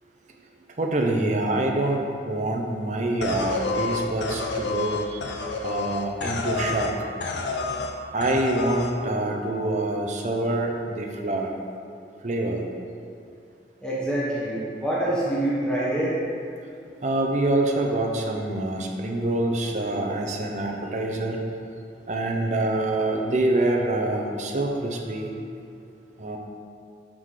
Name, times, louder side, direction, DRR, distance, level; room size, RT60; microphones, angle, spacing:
voice 1, 0.8-5.2 5.6-6.9 8.1-11.5 12.2-12.6 17.0-21.4 22.1-25.4 26.2-26.4, right 2 dB, 40° right, 2 dB, 0.6 m, -26 dB
sound 1, 3.2-6.9 7.2-7.9 8.2-8.9, left 3 dB, 75° left, 0.5 m, -29 dB
voice 2, 13.8-16.2, right 1 dB, 5° left, -8 dB, 0.9 m, -26 dB
7.3 x 3.8 x 4.9 m, 2.5 s
head